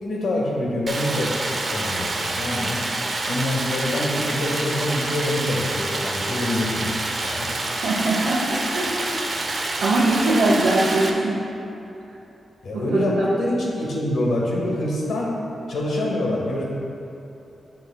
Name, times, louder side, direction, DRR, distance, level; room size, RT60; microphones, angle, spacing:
voice 1, 0.0-1.3 1.7-2.8 3.2-7.5 12.6-15.3 15.7-16.6, left 1 dB, 70° left, -3 dB, 1.4 m, -25 dB
Stream, 0.9-11.1, right 2 dB, 35° right, 0.6 m, -27 dB
voice 2, 7.8-9.0 9.8-11.4 12.7-13.3, right 2 dB, 85° right, -6 dB, 0.9 m, -21 dB
10.0 x 6.1 x 2.3 m, 2.8 s
wide cardioid pair, 150°, 0 cm